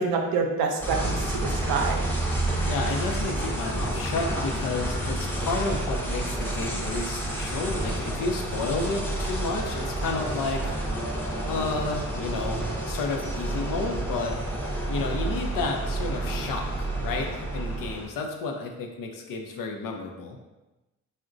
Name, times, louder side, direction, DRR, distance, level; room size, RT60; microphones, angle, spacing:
voice 1, 0.0-2.0, right 4 dB, 90° right, 2 dB, 0.5 m, -27 dB
sound 1, 0.8-18.1, right 1 dB, 5° left, 0.7 m, -29 dB
voice 2, 2.6-11.1 11.4-14.4 14.9-20.4, left 3 dB, 70° left, 3 dB, 0.6 m, -31 dB
3.7 x 2.1 x 2.5 m, 1.1 s
supercardioid pair, 55°, 34 cm